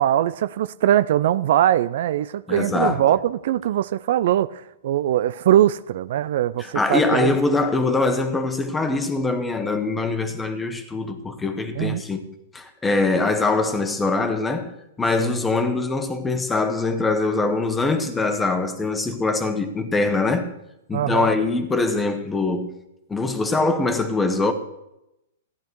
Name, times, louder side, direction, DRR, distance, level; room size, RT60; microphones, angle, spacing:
voice 1, 0.0-7.4 11.8-12.0 15.2-15.3 20.9-21.3, right 11 dB, 60° right, 0.4 m, -21 dB
voice 2, 2.5-3.0 6.6-12.2 12.5-20.5 20.9-22.7 23.1-24.5, left 3 dB, 10° left, 1.3 m, -23 dB
15.0 x 10.5 x 4.7 m
hypercardioid pair, 140°, 0 cm